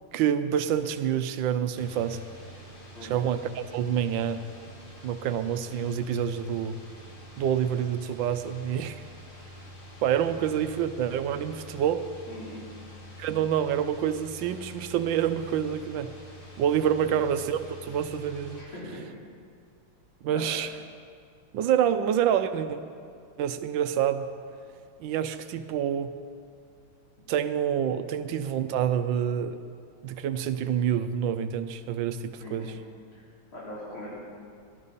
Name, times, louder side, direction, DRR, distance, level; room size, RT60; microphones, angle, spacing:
voice 1, 0.1-2.2 3.0-4.4 5.0-6.8 7.4-9.0 10.0-12.1 13.2-16.1 16.6-18.6 20.2-20.7 21.5-22.8 23.4-24.3 25.0-26.1 27.3-29.6 30.0-32.8, right 9 dB, 75° right, 11 dB, 1.2 m, -27 dB
sound 1, 1.7-18.6, equal, 30° left, 1.6 m, -47 dB
voice 2, 12.3-12.6 18.5-19.0 20.3-20.5 32.4-32.7 33.1-33.2 33.5-34.2, equal, 85° left, -9 dB, 4.2 m, -41 dB
18.0 x 12.0 x 4.1 m, 2.2 s
omnidirectional pair, 2.3 m